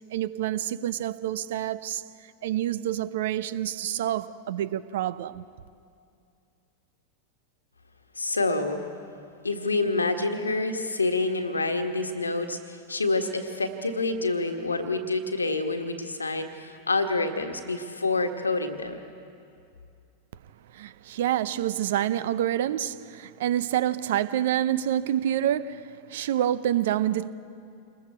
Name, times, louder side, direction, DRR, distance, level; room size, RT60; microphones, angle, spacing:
voice 1, 0.1-2.0 2.4-5.5 20.7-27.3, right 11 dB, 55° right, 0.6 m, -27 dB
voice 2, 8.1-8.8 9.4-19.0, left 3 dB, 80° left, 1.5 m, -27 dB
27.5 x 21.0 x 4.6 m
figure-of-eight pair, 90°, 0 cm